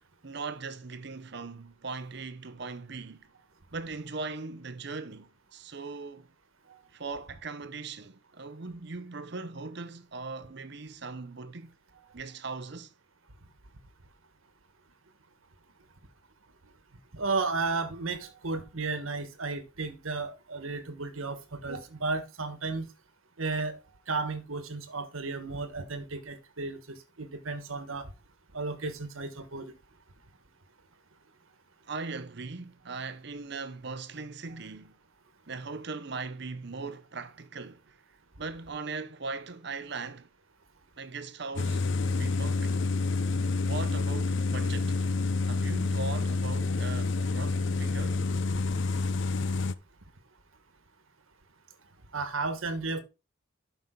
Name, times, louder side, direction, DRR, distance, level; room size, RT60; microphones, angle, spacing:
voice 1, 0.2-3.3 3.7-6.3 6.9-11.7 12.1-12.9 31.9-34.9 35.5-38.0 38.4-40.3 41.0-42.8 43.6-45.0 45.5-48.2, right 4 dB, 55° right, 0.8 m, -39 dB
voice 2, 17.1-22.9 23.4-23.8 24.1-28.1 28.5-29.7 52.1-53.0, right 3 dB, 80° right, 1.4 m, -33 dB
sound 1, 41.6-49.7, left 3 dB, 60° left, 0.6 m, -28 dB
12.0 x 5.4 x 3.8 m
head